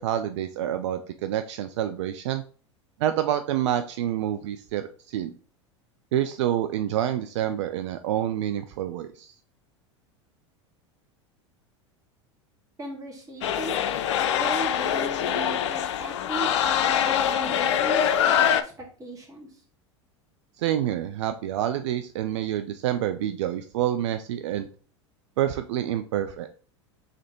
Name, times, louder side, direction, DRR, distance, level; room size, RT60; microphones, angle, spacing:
voice 1, 0.0-2.4 3.0-5.3 6.1-9.3 20.6-24.7 25.4-26.5, right 11 dB, 70° right, 9 dB, 0.4 m, -27 dB
voice 2, 12.8-19.6, right 2 dB, 20° right, -1 dB, 2.0 m, -37 dB
sound 1, 13.4-18.6, left 9 dB, 70° left, 0.4 m, -24 dB
3.6 x 3.4 x 4.3 m, 0.41 s
hypercardioid pair, 90°, 16 cm